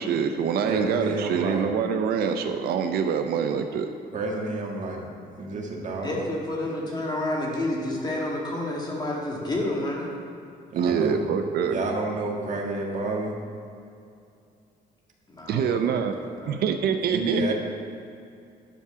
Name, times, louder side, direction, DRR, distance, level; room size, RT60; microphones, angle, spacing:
voice 1, 0.0-3.9 10.7-11.8 15.5-16.1 16.5-17.5, right 7 dB, 70° right, 6 dB, 0.6 m, -25 dB
voice 2, 0.7-1.7 4.1-5.1 5.4-6.2 10.7-11.3 11.6-13.4 17.1-17.5, right 2 dB, 45° right, 0 dB, 1.6 m, -29 dB
voice 3, 6.0-10.1 15.3-15.9 16.2-16.6, left 1 dB, 25° left, -2 dB, 2.1 m, -29 dB
10.0 x 4.8 x 6.8 m, 2.5 s
cardioid pair, 110°, 17 cm